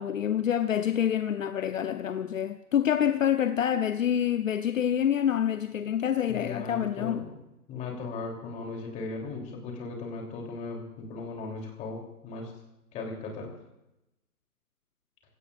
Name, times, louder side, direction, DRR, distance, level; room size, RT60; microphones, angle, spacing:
voice 1, 0.0-7.3, left 9 dB, 60° left, 0.8 m, -27 dB
voice 2, 6.3-7.2 7.7-12.5 12.9-13.5, left 3 dB, 15° left, 3.3 m, -37 dB
29.5 x 17.0 x 2.5 m
hypercardioid pair, 150°, 45 cm